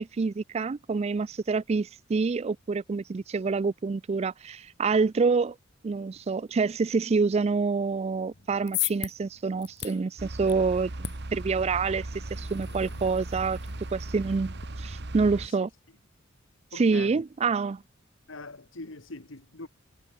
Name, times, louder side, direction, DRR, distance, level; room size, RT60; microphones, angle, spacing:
voice 1, 0.0-5.6 5.8-13.6 13.9-15.7 16.8-17.8, right 4 dB, 30° right, 0.3 m, -27 dB
sound 1, 8.3-14.7, left 12 dB, 55° left, 3.6 m, -39 dB
sound 2, 10.2-15.5, right 2 dB, 55° right, 1.4 m, -37 dB
voice 2, 16.7-17.2 18.3-19.7, left 3 dB, 70° left, 1.9 m, -42 dB
head